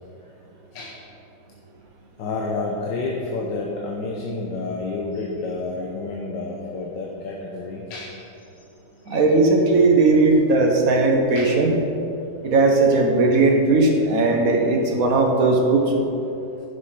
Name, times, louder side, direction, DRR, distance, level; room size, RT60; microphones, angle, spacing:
voice 1, 2.2-8.2 9.1-9.3 9.6-9.7 11.3-11.6, left 3 dB, 90° left, -1 dB, 1.6 m, -30 dB
voice 2, 9.1-11.7 12.4-16.1, right 3 dB, 55° right, 2 dB, 1.5 m, -18 dB
11.0 x 6.9 x 5.6 m, 2.8 s
omnidirectional pair, 1.9 m